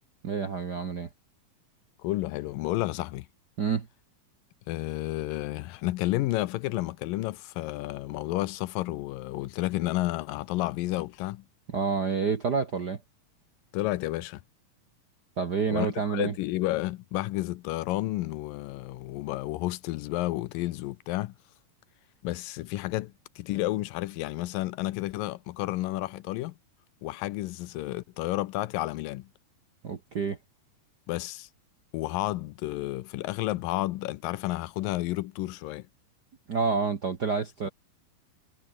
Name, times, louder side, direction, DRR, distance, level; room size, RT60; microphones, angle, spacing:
voice 1, 0.2-1.1 3.6-3.9 11.7-13.0 15.4-16.3 29.8-30.4 36.5-37.7, right 5 dB, 50° right, 1.2 m, -28 dB
voice 2, 2.0-3.3 4.7-11.4 13.7-14.4 15.7-21.3 22.2-26.5 27.0-29.3 31.1-31.5 31.9-35.9, left 17 dB, 85° left, 2.4 m, -31 dB
omnidirectional pair, 4.1 m